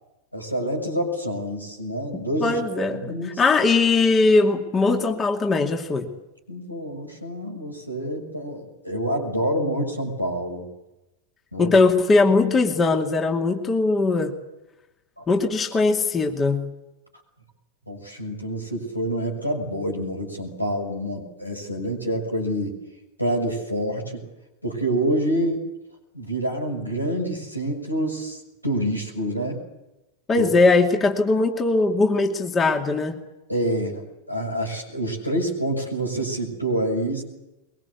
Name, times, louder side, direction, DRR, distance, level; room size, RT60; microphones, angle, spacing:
voice 1, 0.3-2.6 2.9-3.3 6.5-10.7 11.5-11.8 15.2-15.3 17.9-22.8 23.2-24.2 24.6-25.6 26.1-29.6 30.3-30.5 33.5-34.0 34.3-37.2, right 1 dB, 90° left, 1 dB, 6.5 m, -27 dB
voice 2, 2.1-6.1 11.6-14.3 15.3-16.6 30.3-33.2, left 3 dB, 20° left, 3 dB, 2.4 m, -20 dB
23.5 x 22.5 x 8.3 m, 0.98 s
figure-of-eight pair, 90°, 0 cm